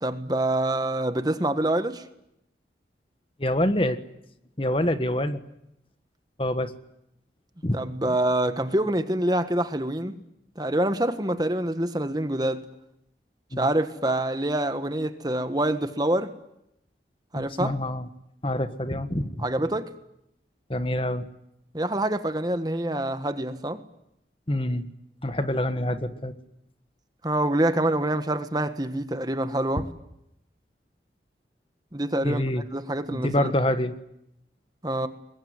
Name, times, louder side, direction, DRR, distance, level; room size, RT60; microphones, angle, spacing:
voice 1, 0.0-2.0 7.7-10.2 10.6-12.7 13.6-16.3 17.3-17.7 19.4-19.9 21.7-23.8 27.2-29.9 31.9-32.4 32.7-33.5 34.8-35.1, right 1 dB, 20° right, 1.5 m, -26 dB
voice 2, 3.4-4.0 4.6-5.4 6.4-6.8 7.6-7.8 8.1-8.2 13.5-13.7 17.3-18.1 18.4-19.4 20.7-21.3 24.5-24.9 25.2-26.4 29.8-29.9 32.2-32.6 33.1-34.0, left 1 dB, 30° left, 1.4 m, -26 dB
25.0 x 22.0 x 9.7 m
head